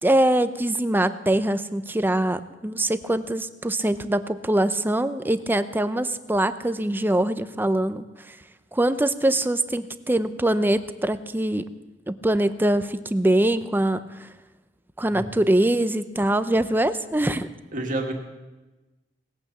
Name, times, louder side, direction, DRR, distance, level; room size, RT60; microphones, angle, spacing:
voice 1, 0.0-8.3 8.7-11.7 12.1-14.3 15.0-17.5, right 1 dB, 10° right, 12 dB, 0.6 m, -23 dB
voice 2, 17.7-18.1, right 2 dB, 45° right, 2 dB, 2.0 m, -29 dB
19.0 x 8.8 x 7.3 m, 1.1 s
head